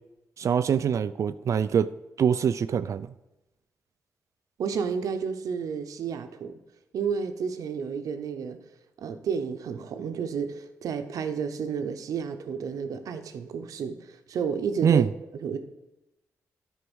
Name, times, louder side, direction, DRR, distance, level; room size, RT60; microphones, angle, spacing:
voice 1, 0.4-1.9 2.2-3.1 14.8-15.1, right 7 dB, 60° right, 13 dB, 0.3 m, -23 dB
voice 2, 4.6-6.6 6.9-8.6 9.0-15.0 15.4-15.6, right 6 dB, 85° right, 8 dB, 0.8 m, -31 dB
10.0 x 4.6 x 6.2 m, 0.95 s
cardioid pair, 80°, 6 cm